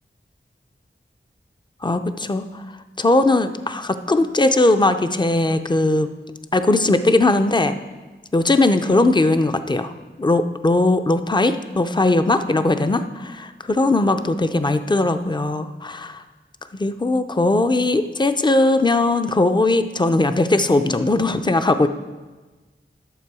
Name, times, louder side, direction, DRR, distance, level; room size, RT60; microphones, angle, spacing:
voice 1, 1.8-2.6 3.0-6.1 6.5-7.8 8.3-9.9 10.2-16.2 16.8-21.9, left 2 dB, 20° left, 9 dB, 0.5 m, -19 dB
12.5 x 6.7 x 4.8 m, 1.3 s
wide cardioid pair, 50°, 21 cm